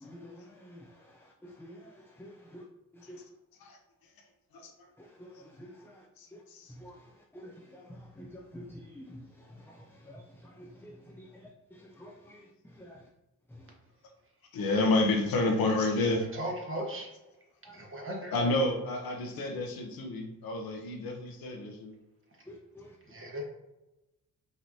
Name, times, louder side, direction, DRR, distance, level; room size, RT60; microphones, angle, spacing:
voice 1, 0.0-2.6 2.9-3.2 5.0-6.1 6.7-7.0 7.3-12.5 12.7-13.0 13.5-13.7 17.7-17.8 22.5-22.9, equal, 5° left, 0 dB, 0.5 m, -49 dB
voice 2, 6.2-6.7 14.5-16.5 18.3-21.9, left 2 dB, 80° left, 3 dB, 0.8 m, -30 dB
voice 3, 16.4-17.1 17.8-18.3 23.1-23.4, right 1 dB, 35° right, -1 dB, 1.4 m, -36 dB
5.0 x 2.9 x 2.7 m, 0.97 s
supercardioid pair, 55°, 36 cm